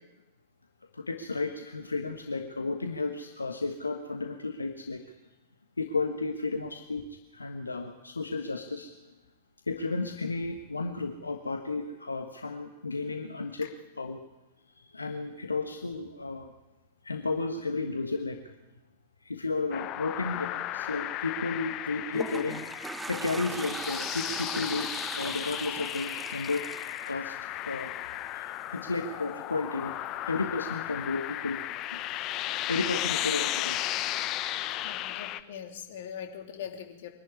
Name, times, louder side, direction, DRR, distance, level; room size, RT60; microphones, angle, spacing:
voice 1, 0.9-5.1 5.8-7.0 7.3-8.9 9.7-13.7 14.0-14.3 14.7-16.5 17.0-18.4 19.2-22.7 23.1-26.6 27.1-27.4 27.6-27.9 28.3-29.9 30.2-31.6 31.9-32.0 32.7-33.8, left 3 dB, 80° left, 5 dB, 1.4 m, -33 dB
sound 1, 19.7-35.4, left 14 dB, 35° left, 0.9 m, -35 dB
Toilet flush, 21.8-28.1, right 3 dB, 10° right, 0.6 m, -39 dB
voice 2, 34.8-37.1, left 8 dB, 55° left, 4 dB, 2.8 m, -41 dB
24.0 x 11.5 x 9.7 m, 1.0 s
figure-of-eight pair, 100°, 0 cm